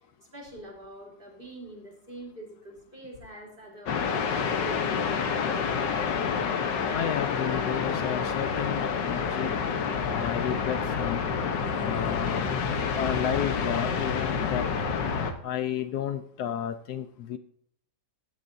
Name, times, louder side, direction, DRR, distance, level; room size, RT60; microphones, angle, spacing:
voice 1, 0.3-5.5, right 1 dB, 30° right, -2 dB, 3.8 m, -44 dB
sound 1, 3.9-15.3, left 6 dB, 85° left, 1.7 m, -28 dB
voice 2, 6.9-9.6 10.0-11.2 11.8-12.5 13.0-14.7 15.4-17.4, left 9 dB, 70° left, 11 dB, 1.2 m, -32 dB
16.0 x 9.6 x 2.7 m, 0.66 s
omnidirectional pair, 1.9 m